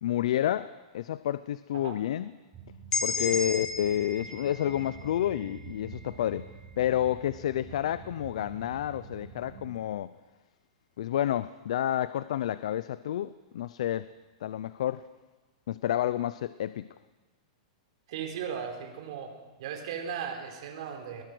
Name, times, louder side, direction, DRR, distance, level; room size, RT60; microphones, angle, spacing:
voice 1, 0.0-2.3 3.0-6.5 6.8-10.1 11.0-14.1 14.4-15.1 15.7-16.9, left 11 dB, 65° left, 16 dB, 0.6 m, -30 dB
sound 1, 2.5-9.8, right 5 dB, 15° right, 3.7 m, -47 dB
sound 2, 2.9-6.7, left 4 dB, 15° left, 1.9 m, -35 dB
voice 2, 18.1-19.3 19.6-21.2, right 7 dB, 55° right, 3 dB, 4.2 m, -37 dB
21.5 x 20.5 x 6.2 m, 1.3 s
supercardioid pair, 170°, 4 cm